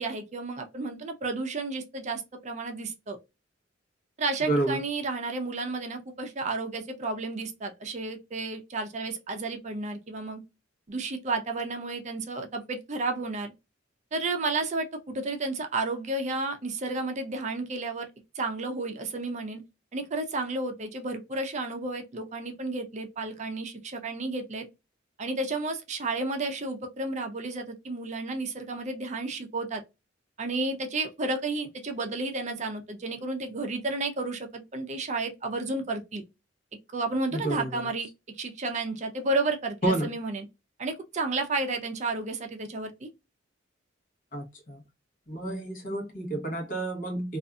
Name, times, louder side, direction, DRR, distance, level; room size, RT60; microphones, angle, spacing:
voice 1, 0.0-3.2 4.2-10.4 10.9-13.5 14.1-18.1 18.4-19.6 19.9-24.7 25.2-29.8 30.4-36.2 36.9-38.1 38.3-40.5 40.8-43.1, right 3 dB, 35° right, 0.5 m, -32 dB
voice 2, 4.5-4.8 37.3-37.8 39.8-40.1 44.3-44.8 45.3-47.4, right 2 dB, 45° left, 1.0 m, -29 dB
2.6 x 2.4 x 2.3 m
head